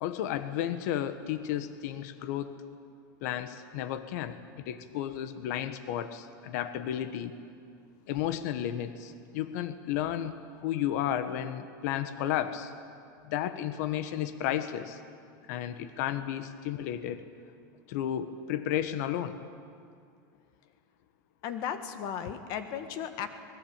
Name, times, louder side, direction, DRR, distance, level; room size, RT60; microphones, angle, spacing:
voice 1, 0.0-2.6 3.2-7.3 8.1-12.7 13.3-15.0 15.5-17.3 17.9-19.4, left 11 dB, 50° left, 11 dB, 1.2 m, -33 dB
voice 2, 21.4-23.3, left 8 dB, 35° left, 9 dB, 1.7 m, -35 dB
26.0 x 21.0 x 8.8 m, 2.3 s
supercardioid pair, 175°, 11 cm